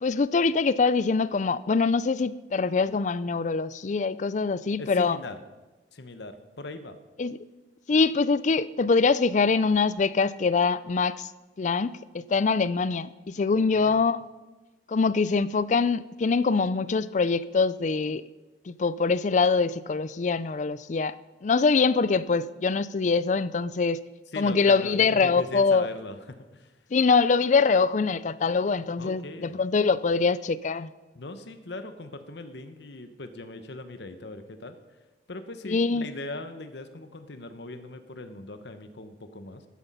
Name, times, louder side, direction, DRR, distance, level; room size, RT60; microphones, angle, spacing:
voice 1, 0.0-5.2 7.2-7.4 7.9-11.3 11.6-14.2 14.9-18.2 18.7-21.1 21.4-24.0 24.4-25.9 26.9-30.9 35.6-36.1, left 4 dB, 40° left, 17 dB, 0.4 m, -24 dB
voice 2, 4.8-5.4 5.9-7.0 13.5-14.1 24.3-26.8 29.0-29.6 31.1-34.8 35.3-39.6, left 2 dB, 65° left, 9 dB, 1.0 m, -40 dB
13.5 x 9.9 x 5.4 m, 1.2 s
head